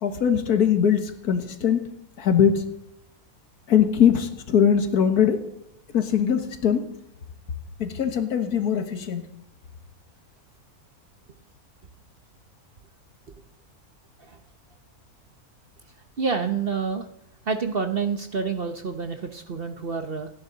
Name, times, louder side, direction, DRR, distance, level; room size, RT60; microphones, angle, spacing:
voice 1, 0.0-2.6 3.7-5.4 5.9-6.8 7.8-9.3, left 8 dB, 80° left, 8 dB, 1.9 m, -21 dB
voice 2, 16.2-17.1 17.4-20.3, right 5 dB, 45° right, 7 dB, 1.0 m, -28 dB
29.5 x 10.0 x 4.0 m, 0.83 s
omnidirectional pair, 1.6 m